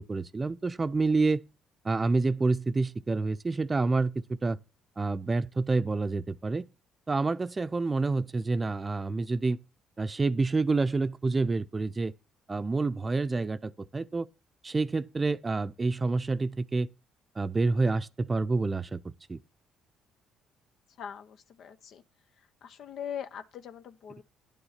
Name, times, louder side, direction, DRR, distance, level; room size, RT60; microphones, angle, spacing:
voice 1, 0.0-1.4 1.8-4.1 4.4-4.6 5.0-6.6 7.1-9.6 10.0-12.1 12.5-14.3 14.6-16.9 17.4-19.4, right 3 dB, 30° right, 0.6 m, -28 dB
voice 2, 21.0-22.0 22.6-24.2, left 8 dB, 65° left, 0.8 m, -41 dB
10.5 x 6.9 x 5.8 m
supercardioid pair, 60°, 0 cm